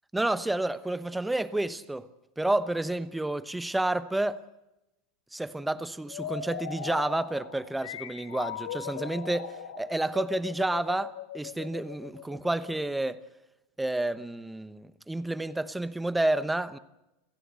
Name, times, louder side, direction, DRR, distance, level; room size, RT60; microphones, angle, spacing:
voice 1, 0.1-2.1 2.4-4.4 5.3-13.2 13.8-16.8, right 2 dB, 5° right, 1.0 m, -30 dB
sound 1, 6.1-12.8, left 9 dB, 80° left, 2.8 m, -39 dB
27.5 x 16.0 x 8.2 m
supercardioid pair, 135°, 0 cm